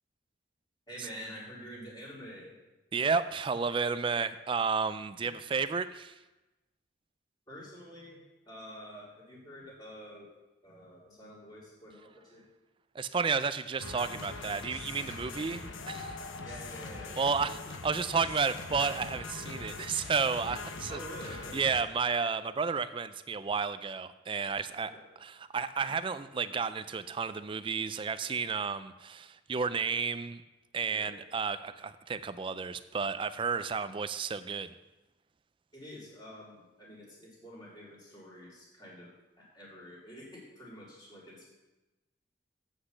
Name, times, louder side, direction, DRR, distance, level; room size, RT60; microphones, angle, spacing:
voice 1, 0.9-2.6 7.5-10.3 10.6-12.5 16.4-17.7 20.9-21.6 24.8-25.1 30.9-31.2 35.7-39.1 39.4-41.5, equal, 20° left, -6 dB, 3.2 m, -48 dB
voice 2, 2.9-6.1 12.9-16.2 17.2-17.6 17.8-21.0 21.5-24.9 25.2-30.4 30.7-34.8, right 5 dB, 25° right, 13 dB, 0.3 m, -32 dB
sound 1, 13.8-21.8, left 3 dB, 85° left, 0.9 m, -42 dB
8.0 x 6.0 x 6.4 m, 1.1 s
head